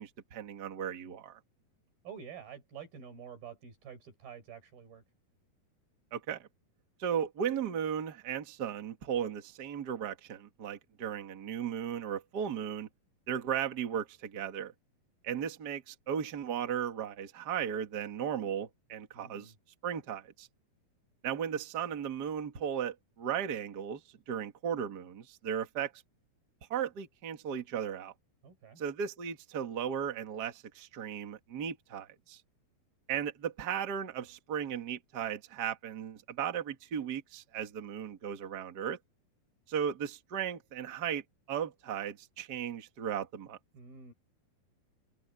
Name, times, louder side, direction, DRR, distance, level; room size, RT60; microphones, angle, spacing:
voice 1, 0.0-1.4 6.1-6.5 7.0-12.9 13.3-14.7 15.2-19.5 19.8-20.5 21.2-24.0 24.3-25.9 26.7-28.1 28.8-32.4 33.1-39.0 39.7-41.2 41.5-43.6, right 8 dB, 40° right, 1.6 m, -36 dB
voice 2, 2.0-5.0 19.1-19.5 28.4-28.8 43.7-44.1, right 7 dB, 75° right, 6.2 m, -48 dB
open air
omnidirectional pair, 4.3 m